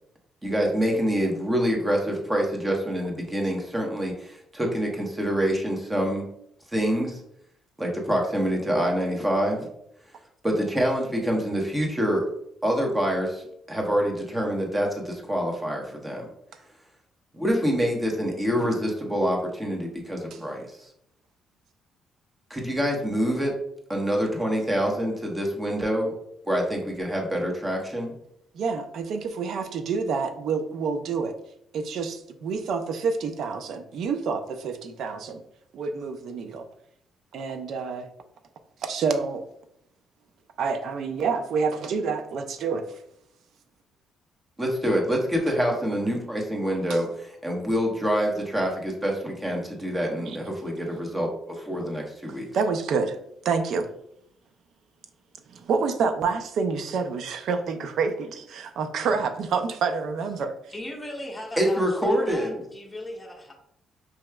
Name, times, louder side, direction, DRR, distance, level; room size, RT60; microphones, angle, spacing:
voice 1, 0.4-6.2 6.7-7.2 7.8-9.7 10.4-12.3 12.6-16.2 17.3-20.9 22.5-23.5 23.9-26.1 26.4-28.1 44.6-52.5 61.6-62.6, equal, 15° right, 0 dB, 1.1 m, -26 dB
voice 2, 28.5-31.4 31.7-35.4 35.7-36.7 37.3-38.1 38.8-39.4 40.6-42.8 46.9-47.0 52.5-53.2 53.4-53.9 55.5-60.5, right 5 dB, 70° right, 8 dB, 0.4 m, -28 dB
voice 3, 60.7-63.5, left 1 dB, 15° left, -1 dB, 0.9 m, -38 dB
4.7 x 3.0 x 2.2 m, 0.73 s
cardioid pair, 90°, 0 cm